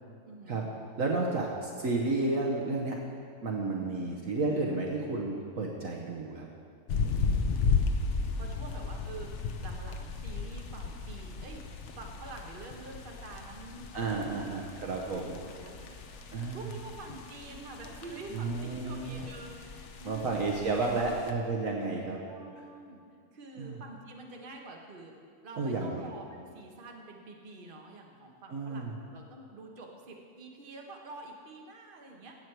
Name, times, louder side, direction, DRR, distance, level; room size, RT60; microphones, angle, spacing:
voice 1, 0.3-0.7 1.1-1.5 3.8-4.2 7.0-7.6 8.4-16.0 16.5-21.3 22.3-23.0 23.3-25.1 25.4-32.3, right 3 dB, 35° right, 1 dB, 1.3 m, -47 dB
voice 2, 1.0-1.5 1.8-3.0 3.4-6.5 13.9-15.4 16.3-16.6 18.3-19.2 20.0-22.2 23.6-23.8 25.6-26.0 28.5-28.9, right 3 dB, 60° right, -1 dB, 1.3 m, -31 dB
sound 1, 6.9-21.3, left 5 dB, 55° left, 0.9 m, -35 dB
15.5 x 8.2 x 4.6 m, 2.3 s
omnidirectional pair, 1.7 m